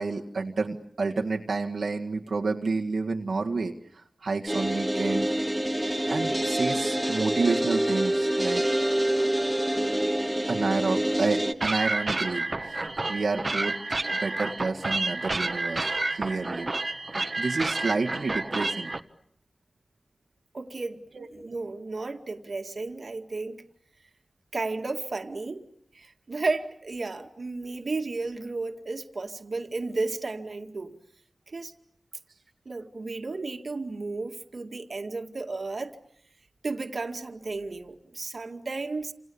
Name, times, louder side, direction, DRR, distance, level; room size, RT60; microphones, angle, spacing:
voice 1, 0.0-5.3 6.1-8.7 10.5-12.8 13.1-13.8 14.2-16.7 17.4-18.9 21.1-21.3, right 3 dB, 80° right, 1.9 m, -29 dB
sound 1, 4.5-11.5, right 1 dB, 5° right, 1.8 m, -26 dB
sound 2, 11.6-19.0, right 2 dB, 40° right, 1.4 m, -30 dB
voice 2, 20.5-23.6 24.5-25.7 25.9-31.0 31.5-31.7 32.7-36.0 36.6-39.1, right 3 dB, 60° right, 2.1 m, -33 dB
29.0 x 28.0 x 7.1 m
wide cardioid pair, 80°, 0 cm